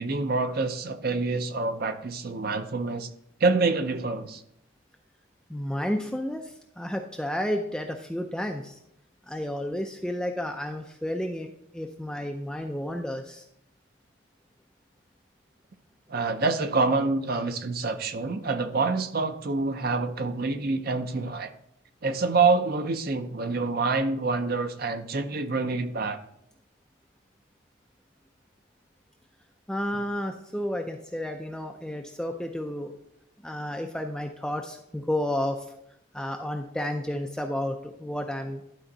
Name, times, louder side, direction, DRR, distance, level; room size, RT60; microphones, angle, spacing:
voice 1, 0.0-3.1 3.4-4.4 16.1-21.5 22.0-26.2, right 3 dB, 45° right, 9 dB, 0.6 m, -26 dB
voice 2, 5.5-8.8 9.3-13.4 29.7-33.0 33.4-35.6 36.1-38.6, left 1 dB, 5° left, 3 dB, 0.4 m, -31 dB
11.5 x 4.4 x 3.9 m, 0.76 s
head